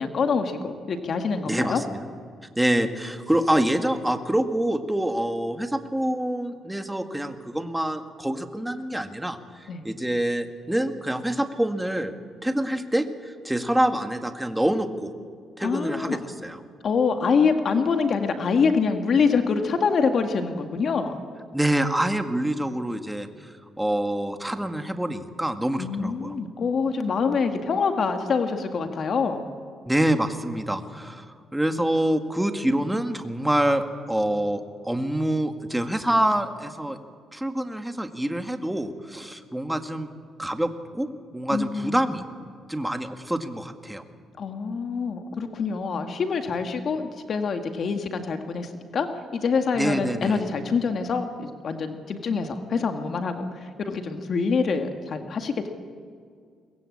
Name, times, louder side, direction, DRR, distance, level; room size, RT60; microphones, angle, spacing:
voice 1, 0.0-1.8 9.7-9.9 15.6-16.2 16.8-21.2 25.8-29.5 41.5-42.0 44.4-49.1 49.3-55.7, left 5 dB, 55° left, 6 dB, 1.9 m, -25 dB
voice 2, 1.5-2.0 2.6-12.1 12.4-15.1 15.6-16.6 21.5-26.4 29.9-31.3 31.5-37.0 37.3-40.1 40.4-41.1 41.3-42.2 42.7-44.0 49.7-50.4, right 1 dB, 5° right, 6 dB, 1.9 m, -26 dB
23.0 x 20.5 x 8.7 m, 2.1 s
cardioid pair, 90°, 0 cm